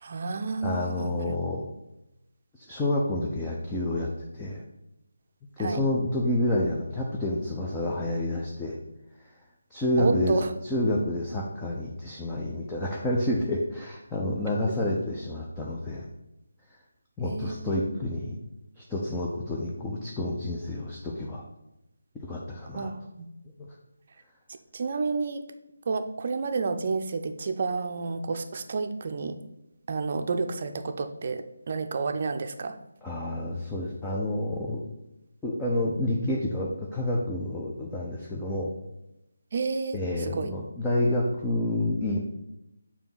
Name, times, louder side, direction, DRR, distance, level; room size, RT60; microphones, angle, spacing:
voice 1, 0.0-1.4 5.6-5.8 10.0-10.5 17.2-18.0 22.7-23.3 24.7-25.4 25.9-29.4 29.9-32.8 39.5-40.5, right 4 dB, 45° right, 6 dB, 0.6 m, -30 dB
voice 2, 0.6-1.7 2.5-4.6 5.6-8.8 9.2-9.3 9.7-16.0 17.2-18.4 18.8-21.4 22.1-22.9 23.6-23.7 33.0-34.8 35.4-38.7 39.9-42.2, left 1 dB, 10° left, -4 dB, 0.7 m, -29 dB
6.9 x 2.8 x 5.6 m, 0.89 s
figure-of-eight pair, 155°, 0 cm